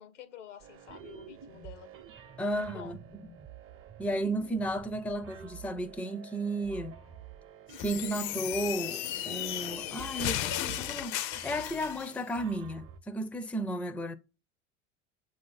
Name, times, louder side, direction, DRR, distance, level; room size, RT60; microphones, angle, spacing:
voice 1, 0.0-1.9 2.4-3.0, left 10 dB, 90° left, 0.9 m, -49 dB
sound 1, 0.6-13.0, right 8 dB, 40° right, 0.7 m, -49 dB
voice 2, 2.4-3.0 4.0-7.0 7.8-14.1, right 1 dB, 5° left, 0.5 m, -34 dB
sound 2, 7.7-12.1, left 13 dB, 60° left, 0.6 m, -35 dB
7.4 x 2.7 x 5.6 m
hypercardioid pair, 85°, 35 cm